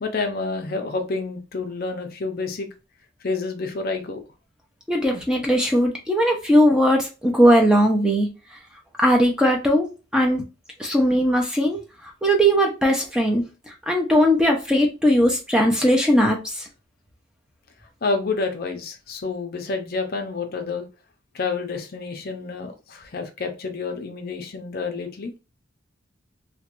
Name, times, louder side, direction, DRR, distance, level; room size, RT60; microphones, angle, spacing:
voice 1, 0.0-2.7 3.2-4.2 18.0-20.8 21.3-25.3, left 4 dB, 45° left, 5 dB, 0.5 m, -29 dB
voice 2, 4.9-8.3 9.0-9.9 10.1-10.4 10.8-11.8 12.2-13.4 13.9-16.4, equal, 5° right, 1 dB, 0.5 m, -19 dB
2.9 x 2.2 x 2.9 m, 0.30 s
head